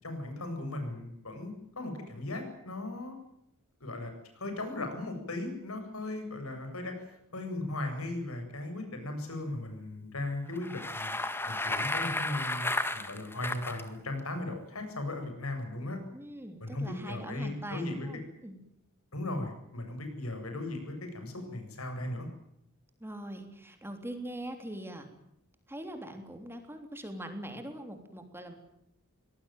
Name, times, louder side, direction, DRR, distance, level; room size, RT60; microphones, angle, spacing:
voice 1, 0.0-3.2 3.8-11.2 11.5-12.7 12.9-16.0 16.6-18.1 19.1-22.3, left 2 dB, 80° left, 6 dB, 7.9 m, -37 dB
Bicycle, 10.5-13.8, left 2 dB, 10° left, 1.8 m, -33 dB
voice 2, 16.1-18.6 23.0-25.1 25.7-28.5, right 1 dB, 10° right, 6 dB, 3.4 m, -42 dB
24.0 x 19.0 x 9.2 m, 0.78 s
head